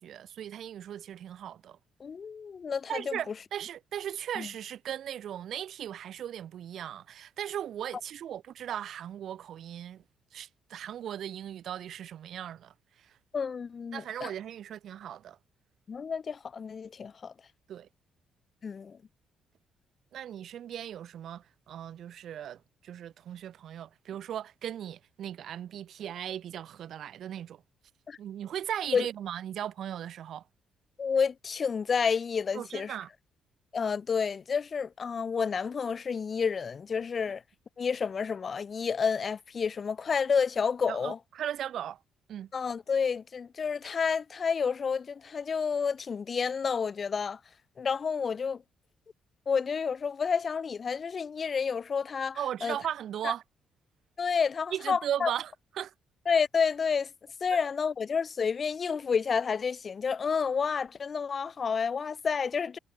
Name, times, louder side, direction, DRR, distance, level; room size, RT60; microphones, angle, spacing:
voice 1, 0.0-1.8 2.9-10.0 10.3-13.1 13.9-15.4 17.7-17.9 20.1-27.6 28.2-30.4 32.5-33.1 40.9-42.0 42.3-42.5 52.4-53.4 54.7-55.9 57.5-57.6, right 10 dB, 70° right, 0.8 m, -37 dB
voice 2, 2.0-3.2 4.4-4.5 13.3-14.3 15.9-17.3 18.6-19.0 28.1-28.2 28.9-29.1 31.0-32.9 33.7-37.4 37.8-41.2 42.5-47.4 47.8-48.6 49.5-52.8 54.2-55.3 56.3-57.1 57.4-62.8, left 6 dB, 45° left, 0.4 m, -30 dB
cardioid pair, 90°, 0 cm